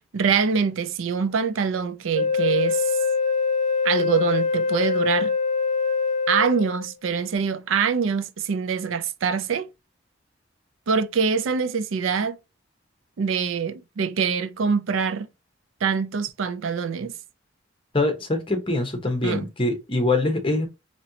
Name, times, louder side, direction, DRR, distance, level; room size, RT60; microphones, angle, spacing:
voice 1, 0.1-3.0 3.8-5.4 6.3-9.7 10.9-12.4 13.2-15.3 15.8-17.1 19.2-19.5, right 6 dB, 85° right, 0.4 m, -24 dB
Wind instrument woodwind instrument, 2.1-6.9, left 5 dB, 45° left, 0.4 m, -23 dB
voice 2, 17.9-20.7, left 2 dB, 25° left, 0.9 m, -24 dB
4.2 x 2.9 x 2.8 m
head